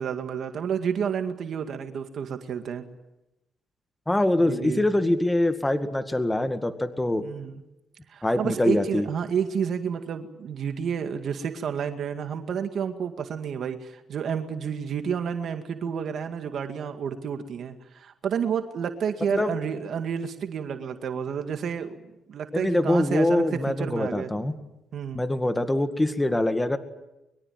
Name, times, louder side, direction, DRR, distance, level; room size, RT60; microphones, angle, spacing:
voice 1, 0.0-2.9 4.4-4.8 7.2-7.6 8.1-22.0 22.3-24.3 24.9-25.2, right 7 dB, 60° right, 6 dB, 2.1 m, -30 dB
voice 2, 4.1-7.2 8.2-9.1 19.3-19.5 22.5-24.5 25.1-26.8, left 1 dB, 10° left, 8 dB, 2.1 m, -24 dB
24.0 x 23.0 x 9.5 m, 0.94 s
cardioid pair, 90°, 0 cm